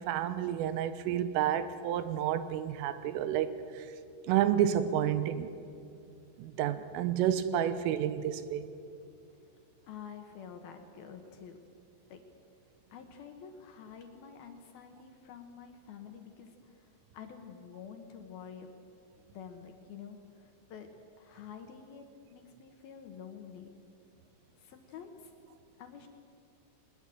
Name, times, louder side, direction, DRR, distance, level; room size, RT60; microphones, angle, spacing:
voice 1, 0.0-3.9 4.3-5.5 6.4-8.7, right 10 dB, 90° right, 3.6 m, -30 dB
voice 2, 9.8-11.6 12.1-12.2 12.9-16.9 17.1-18.7 19.2-20.9 21.2-22.0 22.3-23.7 24.6-25.3 25.8-26.1, left 7 dB, 65° left, 2.6 m, -48 dB
21.5 x 21.0 x 7.8 m
omnidirectional pair, 5.7 m